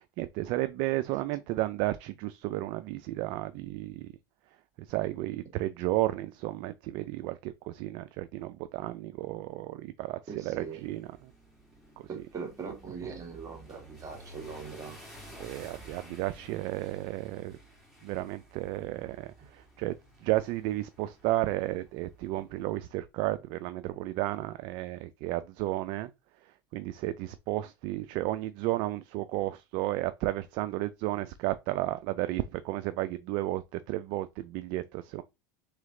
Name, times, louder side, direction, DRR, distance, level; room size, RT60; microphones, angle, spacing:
voice 1, 0.0-4.1 4.9-11.3 15.4-17.6 18.0-20.0 20.2-26.1 26.7-35.2, right 16 dB, 60° right, 0.4 m, -33 dB
voice 2, 10.3-10.8 12.1-15.0, right 5 dB, 35° right, 1.7 m, -41 dB
sound 1, 10.4-22.6, right 1 dB, ahead, 2.2 m, -53 dB
3.7 x 3.2 x 3.6 m
supercardioid pair, 105°, 10 cm